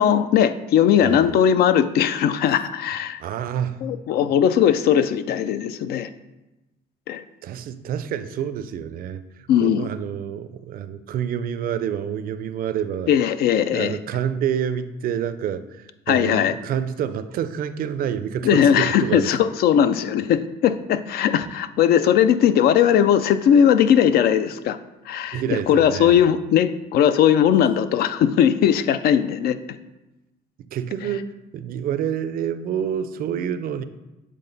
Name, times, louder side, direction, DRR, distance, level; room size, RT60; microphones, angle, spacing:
voice 1, 0.0-3.2 3.8-6.1 7.1-7.2 9.5-9.9 13.1-14.0 16.1-16.6 18.4-24.8 25.1-29.6, left 9 dB, 70° left, 12 dB, 0.4 m, -19 dB
voice 2, 3.2-3.9 7.4-9.2 9.6-13.1 13.7-19.3 25.3-26.2 30.7-33.8, right 9 dB, 60° right, 12 dB, 0.4 m, -28 dB
7.6 x 3.6 x 3.9 m, 1.0 s
cardioid pair, 110°, 17 cm